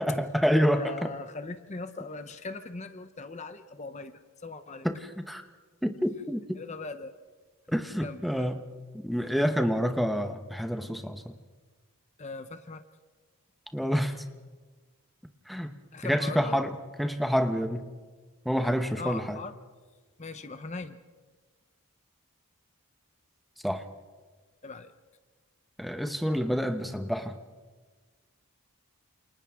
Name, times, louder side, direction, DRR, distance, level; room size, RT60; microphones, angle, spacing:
voice 1, 0.0-1.1 4.8-5.4 5.8-6.6 7.7-8.6 9.0-11.2 13.7-14.2 15.5-15.7 16.0-16.7 17.0-17.9 18.4-19.4 23.6-23.9 25.8-27.3, equal, ahead, 6 dB, 0.9 m, -28 dB
voice 2, 0.8-4.9 6.6-7.2 8.0-8.5 12.2-12.8 15.9-16.6 18.6-19.6 20.2-21.0 24.6-24.9, left 3 dB, 30° left, 10 dB, 0.7 m, -40 dB
29.0 x 28.0 x 3.6 m, 1.4 s
head